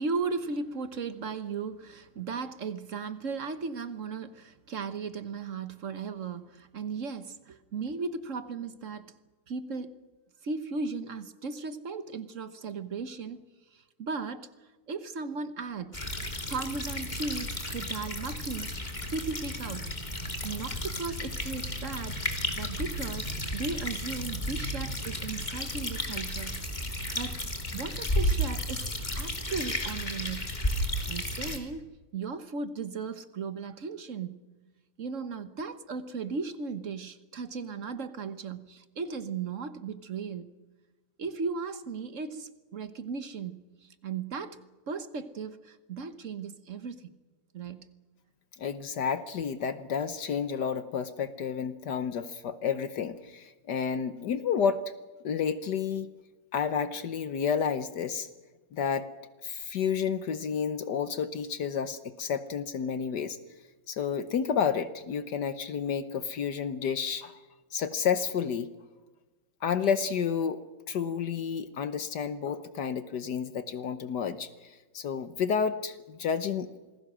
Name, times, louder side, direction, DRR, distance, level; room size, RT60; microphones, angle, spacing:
voice 1, 0.0-9.1 9.5-9.9 10.4-13.4 13.7-14.5 14.9-16.0 16.5-18.7 19.1-19.9 20.4-22.2 22.5-26.6 27.1-27.4 27.7-28.8 29.1-30.5 30.8-34.4 35.0-40.5 41.2-44.6 44.9-47.1 47.5-47.9, right 4 dB, 50° right, 12 dB, 1.3 m, -36 dB
sound 1, 15.9-31.6, left 1 dB, 25° left, 2.6 m, -33 dB
voice 2, 48.6-54.8 55.2-56.1 56.5-58.3 58.7-59.1 59.4-63.4 63.9-67.4 67.7-68.7 69.6-70.6 70.9-76.7, left 7 dB, 70° left, 12 dB, 1.5 m, -30 dB
27.0 x 20.0 x 6.2 m, 1.2 s
omnidirectional pair, 2.0 m